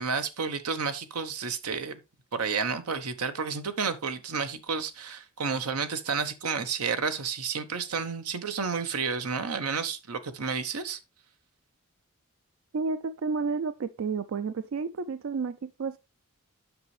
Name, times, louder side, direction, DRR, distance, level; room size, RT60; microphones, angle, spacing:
voice 1, 0.0-2.0 2.3-11.0, right 5 dB, 90° right, 0.9 m, -31 dB
voice 2, 12.7-16.0, right 4 dB, 65° right, 0.4 m, -31 dB
8.1 x 6.1 x 3.2 m
head